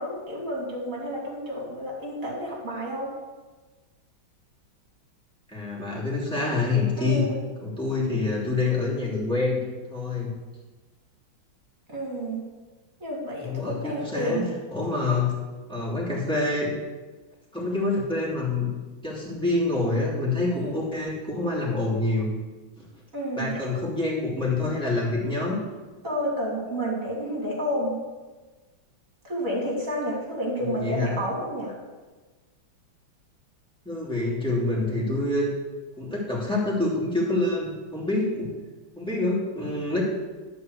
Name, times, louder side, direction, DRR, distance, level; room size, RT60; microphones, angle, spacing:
voice 1, 0.0-3.1 7.0-7.4 11.9-12.4 13.0-14.5 20.5-20.7 23.1-23.6 26.0-28.0 29.2-31.7, equal, 40° right, -2 dB, 3.1 m, -30 dB
voice 2, 5.5-7.3 7.6-9.6 9.9-10.3 13.4-14.4 14.7-15.3 15.7-16.7 17.5-18.7 19.0-22.3 22.8-22.9 23.4-25.6 30.6-31.1 33.8-35.5 36.0-38.5 39.0-40.0, left 2 dB, ahead, -6 dB, 3.0 m, -26 dB
12.5 x 4.8 x 7.9 m, 1.2 s
omnidirectional pair, 2.2 m